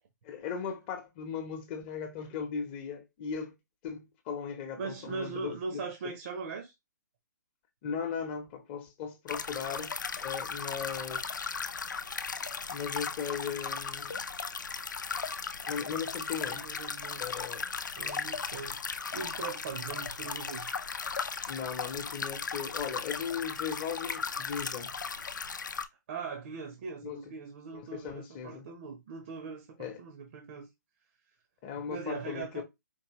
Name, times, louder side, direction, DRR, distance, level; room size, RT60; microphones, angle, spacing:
voice 1, 0.2-3.6 3.8-6.1 7.8-9.9 10.2-11.3 12.7-14.2 15.6-16.7 17.2-17.7 21.5-24.9 27.0-27.2 27.7-28.7 29.8-30.0 31.6-32.6, left 7 dB, 30° left, 0.9 m, -37 dB
voice 2, 4.8-6.7 16.5-17.3 18.0-18.8 19.1-20.7 26.1-30.7 31.7-32.6, right 5 dB, 45° right, 1.0 m, -40 dB
sound 1, 9.3-25.9, left 5 dB, 80° left, 0.6 m, -37 dB
4.6 x 3.0 x 3.0 m
hypercardioid pair, 140°, 10 cm